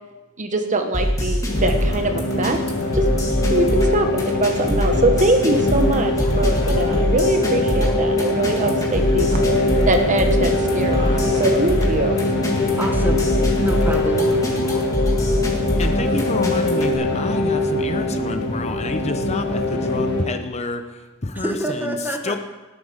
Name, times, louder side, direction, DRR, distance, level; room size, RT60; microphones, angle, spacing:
voice 1, 0.4-2.6 2.9-3.1 3.5-9.3 9.9-12.2, right 2 dB, 35° right, 6 dB, 1.1 m, -22 dB
sound 1, 0.9-16.9, equal, 15° left, 2.1 m, -23 dB
sound 2, 1.5-20.3, left 2 dB, 55° left, 1.7 m, -22 dB
voice 2, 12.8-13.3 13.6-14.4 21.3-22.4, right 1 dB, 10° right, 3 dB, 1.2 m, -27 dB
voice 3, 15.8-22.0 22.2-22.4, left 2 dB, 30° left, 7 dB, 0.7 m, -28 dB
18.5 x 8.2 x 5.1 m, 1.2 s
head